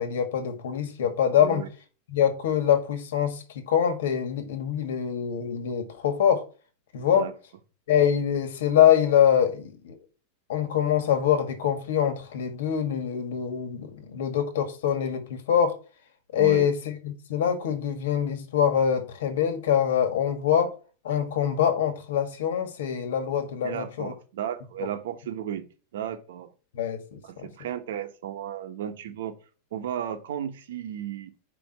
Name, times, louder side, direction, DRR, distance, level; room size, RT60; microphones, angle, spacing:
voice 1, 0.0-1.6 2.1-6.4 6.9-7.3 7.9-10.0 10.5-15.7 16.3-20.7 21.0-24.1 26.7-27.5, left 9 dB, 85° left, 1.8 m, -24 dB
voice 2, 1.4-1.7 7.1-7.3 16.4-16.6 23.6-25.6 25.9-26.5 27.2-29.3 29.7-31.3, right 10 dB, 85° right, 1.1 m, -34 dB
5.1 x 4.8 x 6.0 m
supercardioid pair, 180°, 0 cm